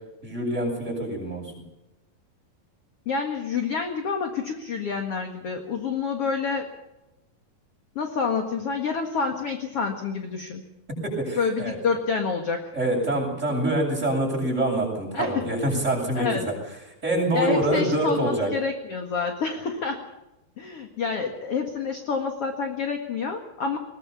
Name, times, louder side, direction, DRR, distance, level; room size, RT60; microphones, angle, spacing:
voice 1, 0.2-1.4 11.0-11.8 12.7-16.5 17.0-18.5, right 1 dB, 15° right, -1 dB, 8.1 m, -25 dB
voice 2, 3.1-6.7 8.0-10.6 11.4-12.7 15.1-15.5 16.2-16.5 17.3-20.0 20.6-23.8, left 5 dB, 45° left, 4 dB, 2.2 m, -28 dB
21.5 x 19.5 x 7.1 m, 0.95 s
omnidirectional pair, 4.4 m